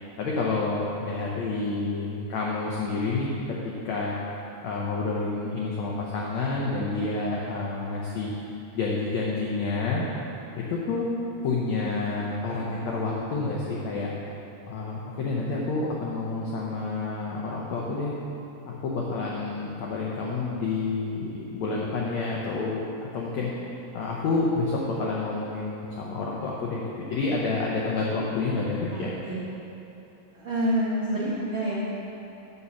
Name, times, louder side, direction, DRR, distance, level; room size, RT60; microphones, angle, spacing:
voice 1, 0.2-4.1 4.6-8.3 8.7-10.0 10.7-11.1 11.4-14.1 14.7-18.2 18.6-22.8 23.1-23.5 23.9-29.1, left 3 dB, 90° left, -3 dB, 1.5 m, -29 dB
voice 2, 28.9-29.4 30.3-31.8, equal, 80° right, -8 dB, 1.1 m, -28 dB
7.0 x 6.9 x 6.9 m, 2.9 s
omnidirectional pair, 4.3 m